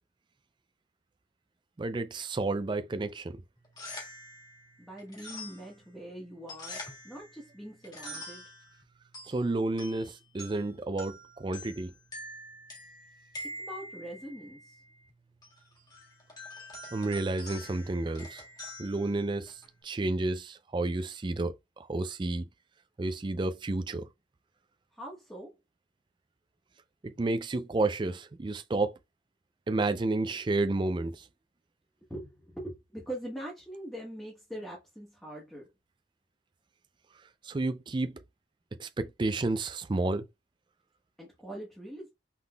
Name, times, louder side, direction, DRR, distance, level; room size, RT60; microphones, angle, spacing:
voice 1, 1.8-3.4 9.3-11.9 16.9-18.4 18.8-22.5 23.0-24.1 27.0-29.0 29.7-31.3 37.4-38.1 38.8-40.3, right 2 dB, 25° right, 0.3 m, -31 dB
sound 1, 3.6-19.8, left 1 dB, 20° left, 1.6 m, -47 dB
voice 2, 4.8-8.5 13.4-14.8 24.9-25.6 32.1-35.7 41.2-42.1, right 1 dB, ahead, 1.2 m, -43 dB
5.8 x 3.6 x 2.2 m
head